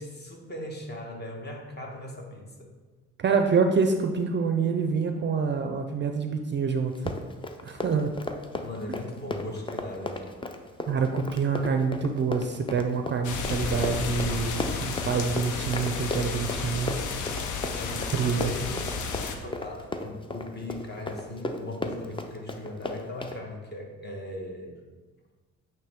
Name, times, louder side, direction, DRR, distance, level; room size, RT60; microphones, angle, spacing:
voice 1, 0.0-2.7 8.6-10.2 17.7-18.8 19.4-24.8, left 1 dB, 35° left, 0 dB, 1.3 m, -38 dB
voice 2, 3.2-6.9 7.6-8.1 8.9-9.0 10.9-17.0 18.1-18.5, right 5 dB, 40° right, 6 dB, 0.4 m, -26 dB
Run, 6.9-23.4, left 2 dB, 15° left, 0.5 m, -35 dB
sound 1, 13.2-19.4, left 5 dB, 80° left, 0.7 m, -32 dB
8.5 x 3.1 x 3.6 m, 1.3 s
cardioid pair, 90°, 30 cm